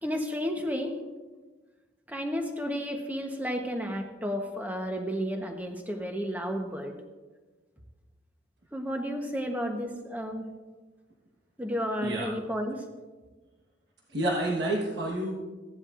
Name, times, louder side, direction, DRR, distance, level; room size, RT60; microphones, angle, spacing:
voice 1, 0.0-1.0 2.1-7.0 8.7-10.5 11.6-12.8, equal, 10° right, 3 dB, 1.0 m, -32 dB
voice 2, 14.1-15.4, right 1 dB, 65° right, -2 dB, 1.4 m, -29 dB
15.5 x 10.5 x 2.5 m, 1.3 s
head